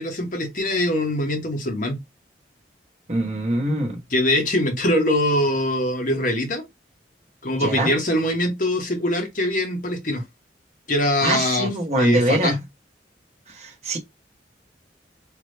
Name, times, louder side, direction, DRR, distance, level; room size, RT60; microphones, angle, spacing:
voice 1, 0.0-2.0 4.1-6.6 7.4-10.2 10.9-11.7 11.9-12.5, left 1 dB, 50° left, 0.9 m, -23 dB
voice 2, 3.1-4.0 7.6-7.9 11.2-12.6 13.6-14.0, right 1 dB, 40° right, 1.0 m, -23 dB
3.4 x 2.0 x 3.2 m
head